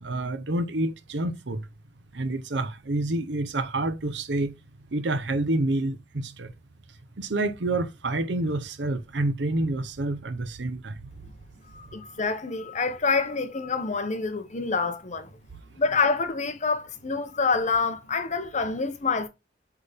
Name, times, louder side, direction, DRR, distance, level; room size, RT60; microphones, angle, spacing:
voice 1, 0.0-1.6 2.1-4.5 4.9-6.5 7.2-11.0, right 2 dB, 70° right, 0.8 m, -28 dB
voice 2, 11.7-15.3 15.8-19.3, left 4 dB, 40° left, 0.9 m, -27 dB
8.0 x 3.6 x 3.5 m
head